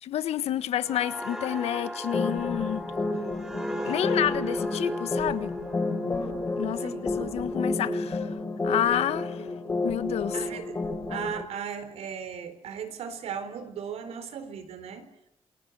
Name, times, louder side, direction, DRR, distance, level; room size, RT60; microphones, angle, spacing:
voice 1, 0.0-2.8 3.8-5.6 6.6-8.3 8.6-9.5 9.8-10.4, left 11 dB, 80° left, 1.6 m, -29 dB
sound 1, 0.8-8.2 8.6-8.9, equal, 5° right, 2.6 m, -38 dB
sound 2, 2.1-11.4, left 2 dB, 20° left, 5.1 m, -30 dB
voice 2, 10.3-10.7 11.1-15.1, right 7 dB, 80° right, 4.0 m, -37 dB
28.0 x 22.0 x 8.3 m
cardioid pair, 145°, 11 cm